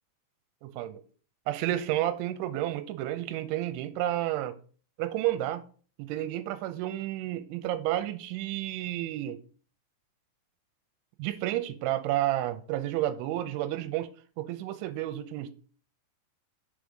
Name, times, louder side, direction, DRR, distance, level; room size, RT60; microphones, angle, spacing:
voice 1, 0.6-1.0 1.5-4.6 5.0-5.6 6.0-9.4 11.2-14.1 14.4-15.5, right 14 dB, 80° right, 3.0 m, -31 dB
7.2 x 5.5 x 5.1 m
omnidirectional pair, 5.8 m